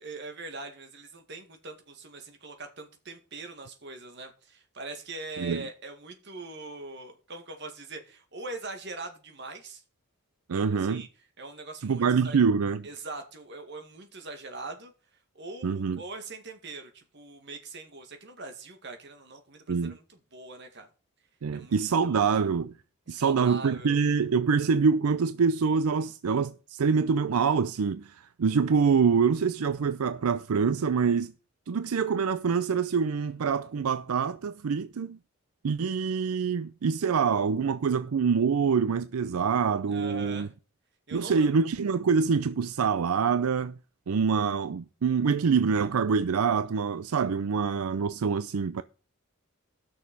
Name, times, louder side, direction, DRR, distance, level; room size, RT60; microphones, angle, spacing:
voice 1, 0.0-9.8 10.5-11.1 11.4-12.4 12.8-14.9 15.4-20.9 21.5-21.8 22.0-22.3 23.1-24.0 39.9-40.5 41.1-41.5, right 3 dB, 55° right, 2.0 m, -42 dB
voice 2, 10.5-11.0 11.8-12.9 15.6-16.0 19.7-20.0 21.4-22.7 23.1-31.3 31.7-35.2 35.6-40.5 41.1-43.7 44.1-48.8, right 5 dB, 85° right, 0.5 m, -25 dB
13.0 x 6.4 x 5.3 m
head